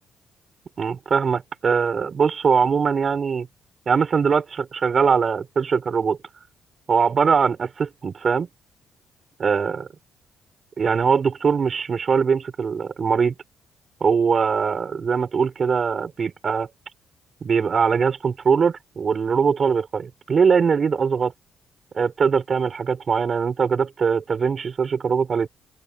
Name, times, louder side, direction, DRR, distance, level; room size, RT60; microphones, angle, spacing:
voice 1, 0.8-3.5 3.9-6.2 6.9-8.5 9.4-9.8 10.8-13.3 14.0-16.7 17.4-21.3 21.9-25.5, right 6 dB, 45° right, 6.1 m, -21 dB
open air
cardioid pair, 90°, 0 cm